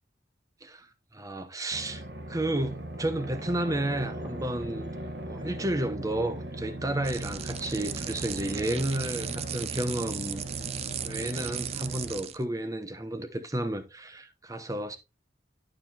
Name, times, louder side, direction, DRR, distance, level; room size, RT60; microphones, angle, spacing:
voice 1, 0.6-4.9 5.2-10.8 11.0-15.0, right 1 dB, 20° right, 0.8 m, -32 dB
sound 1, 1.7-12.2, right 1 dB, 60° right, 1.3 m, -39 dB
sound 2, 7.0-12.4, right 9 dB, 35° right, 0.4 m, -37 dB
11.0 x 5.0 x 2.8 m
head